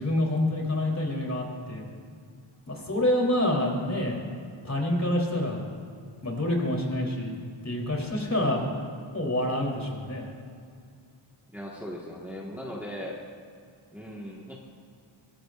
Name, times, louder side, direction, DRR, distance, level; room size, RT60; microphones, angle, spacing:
voice 1, 0.0-1.8 2.7-4.2 4.6-5.7 6.2-7.3 7.6-8.6 9.1-10.3, left 1 dB, 35° left, -1 dB, 3.4 m, -27 dB
voice 2, 11.5-13.2 13.9-14.6, equal, 5° right, -4 dB, 1.6 m, -38 dB
22.5 x 18.5 x 2.5 m, 2.3 s
wide cardioid pair, 115°, 49 cm